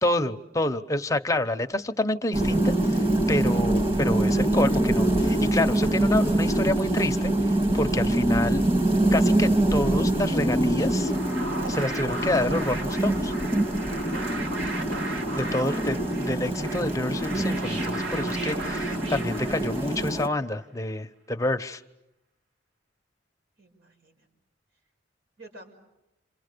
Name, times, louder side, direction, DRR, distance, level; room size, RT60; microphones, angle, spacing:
voice 1, 0.0-8.6 9.1-11.1 11.7-13.3 15.3-21.8, left 1 dB, 15° left, 6 dB, 0.9 m, -28 dB
sound 1, 2.3-20.3, right 1 dB, 30° right, 2.0 m, -24 dB
sound 2, 10.8-20.2, right 2 dB, 60° right, 2.3 m, -37 dB
voice 2, 23.6-24.3 25.4-25.7, right 1 dB, 80° right, 2 dB, 5.8 m, -51 dB
29.0 x 28.0 x 6.8 m, 0.88 s
head